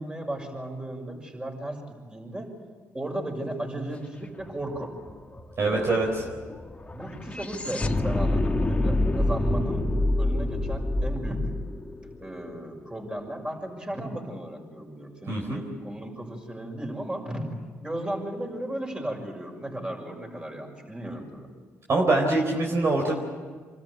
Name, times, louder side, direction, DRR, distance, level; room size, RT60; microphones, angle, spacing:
voice 1, 0.0-1.8 2.1-2.5 2.9-4.9 5.6-6.3 6.6-9.8 10.2-11.4 12.2-17.4 17.8-21.5, right 1 dB, 15° right, 1 dB, 6.5 m, -35 dB
sound 1, 4.4-4.5 4.7-13.0, left 1 dB, 20° left, 1.5 m, -27 dB
voice 2, 5.6-6.1 15.3-15.6 21.9-23.2, right 2 dB, 50° right, 0 dB, 4.1 m, -23 dB
26.0 x 13.5 x 10.0 m, 1.5 s
supercardioid pair, 65°, 6 cm